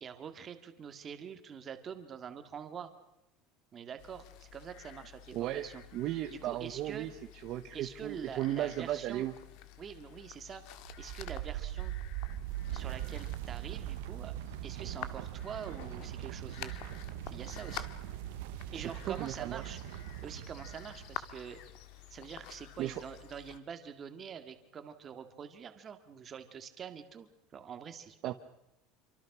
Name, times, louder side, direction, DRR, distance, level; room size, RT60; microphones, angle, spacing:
voice 1, 0.0-2.9 3.7-5.8 6.3-7.1 7.7-9.3 9.8-10.6 11.0-11.9 12.7-14.3 14.6-16.8 17.3-17.9 18.7-19.8 20.2-21.6 22.1-28.3, right 7 dB, 20° right, 8 dB, 2.0 m, -45 dB
sound 1, 4.0-23.6, left 12 dB, 50° left, 1.6 m, -50 dB
voice 2, 5.3-7.1 7.4-9.3 18.7-19.8 22.8-23.0 28.2-28.3, right 13 dB, 40° right, 9 dB, 0.9 m, -36 dB
sound 2, 10.8-21.6, right 15 dB, 70° right, 0.8 m, -41 dB
27.5 x 24.5 x 6.1 m, 0.88 s
cardioid pair, 180°, 0 cm